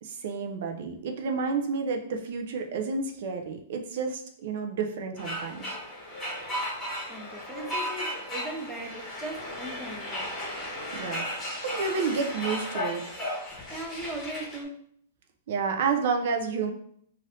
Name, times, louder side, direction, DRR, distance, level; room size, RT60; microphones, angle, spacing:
voice 1, 0.0-5.8 10.9-13.2 15.5-16.7, right 5 dB, 60° right, 3 dB, 0.5 m, -30 dB
sound 1, 5.2-14.6, left 1 dB, 15° left, 1.0 m, -35 dB
voice 2, 7.1-10.3 13.7-14.8, right 1 dB, 5° right, 0 dB, 0.5 m, -38 dB
2.6 x 2.5 x 3.3 m, 0.64 s
hypercardioid pair, 150°, 0 cm